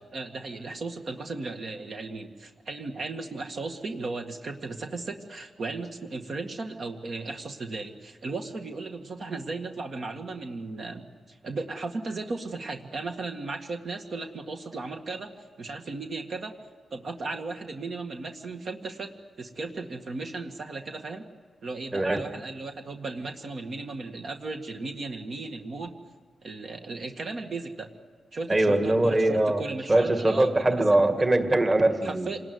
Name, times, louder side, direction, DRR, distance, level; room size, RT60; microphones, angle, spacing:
voice 1, 0.1-16.5 16.9-19.1 19.4-21.3 21.6-25.9 26.4-27.9 28.3-30.8 32.0-32.4, right 3 dB, 55° right, 3 dB, 1.9 m, -36 dB
voice 2, 21.9-22.2 28.5-29.6 29.9-32.3, right 1 dB, 25° right, 6 dB, 2.2 m, -22 dB
27.5 x 19.5 x 9.6 m, 1.5 s
wide cardioid pair, 120°, 0 cm